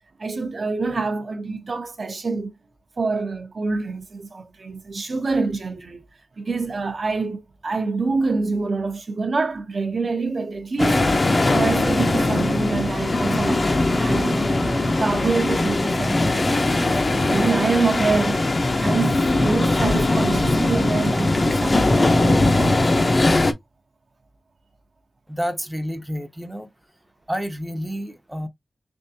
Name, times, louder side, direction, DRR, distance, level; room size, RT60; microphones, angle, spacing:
voice 1, 0.2-2.5 3.0-6.1 6.4-11.2 11.5-13.6 14.0-18.4 18.8-23.0, right 4 dB, 55° right, 0.7 m, -26 dB
sound 1, 10.8-23.5, left 2 dB, 40° left, 0.6 m, -20 dB
voice 2, 25.3-26.7 27.3-28.5, equal, 10° right, 0.6 m, -29 dB
3.5 x 3.4 x 2.7 m
wide cardioid pair, 120°, 0 cm